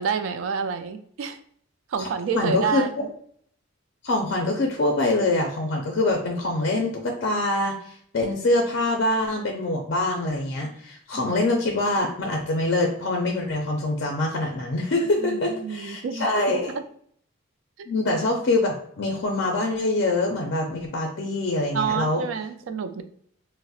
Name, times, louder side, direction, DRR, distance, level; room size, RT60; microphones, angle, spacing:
voice 1, 0.0-1.4 1.9-2.9 11.1-11.2 15.2-16.8 17.8-17.9 21.7-23.0, right 6 dB, 75° right, 9 dB, 0.3 m, -28 dB
voice 2, 2.3-2.8 4.0-16.7 17.9-22.2, left 2 dB, 60° left, 1 dB, 0.4 m, -24 dB
4.0 x 2.0 x 2.3 m, 0.62 s
head